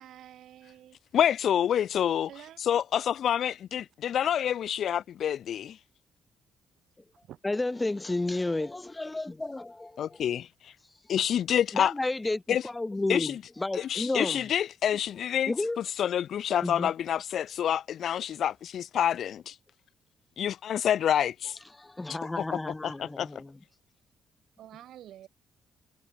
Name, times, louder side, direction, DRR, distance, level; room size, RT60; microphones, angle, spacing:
voice 1, 0.0-1.0 2.3-2.8 7.1-7.4 24.6-25.3, right 12 dB, 75° right, 3.1 m, -49 dB
voice 2, 1.1-2.3 2.6-5.8 10.0-10.7 11.1-11.9 12.5-12.6 13.1-13.4 13.7-19.6 20.4-21.6 22.4-23.3, left 9 dB, 65° left, 0.6 m, -28 dB
voice 3, 7.4-10.1 11.7-13.3 13.6-14.4 15.5-15.8 16.6-16.9 21.8-23.5, left 2 dB, 15° left, 0.4 m, -31 dB
cardioid pair, 90°, 0 cm